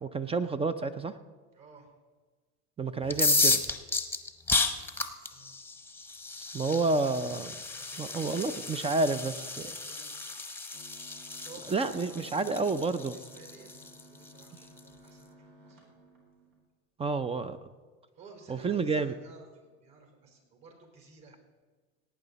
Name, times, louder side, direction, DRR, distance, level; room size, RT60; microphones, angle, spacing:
voice 1, 0.0-1.2 2.8-3.6 6.5-7.5 8.0-9.4 11.7-13.2 17.0-17.6 18.5-19.1, right 3 dB, 15° right, 12 dB, 0.4 m, -29 dB
voice 2, 1.5-1.9 5.3-5.5 7.7-9.0 9.3-10.5 11.3-12.4 13.0-15.9 18.2-21.4, right 4 dB, 50° right, 1 dB, 4.2 m, -54 dB
sound 1, 3.0-14.8, left 3 dB, 5° left, 0.9 m, -33 dB
sound 2, 10.7-16.6, equal, 75° right, 4.0 m, -56 dB
17.5 x 9.0 x 4.0 m, 1.4 s
hypercardioid pair, 95°, 42 cm